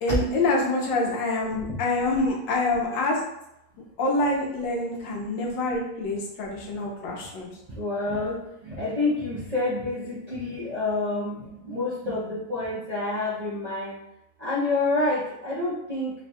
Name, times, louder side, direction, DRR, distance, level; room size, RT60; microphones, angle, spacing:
voice 1, 0.0-3.2 4.0-7.5, left 2 dB, 75° left, -1 dB, 1.4 m, -26 dB
voice 2, 7.7-14.0 14.4-16.1, left 2 dB, 40° right, -9 dB, 0.6 m, -28 dB
3.9 x 2.3 x 4.1 m, 0.84 s
omnidirectional pair, 2.1 m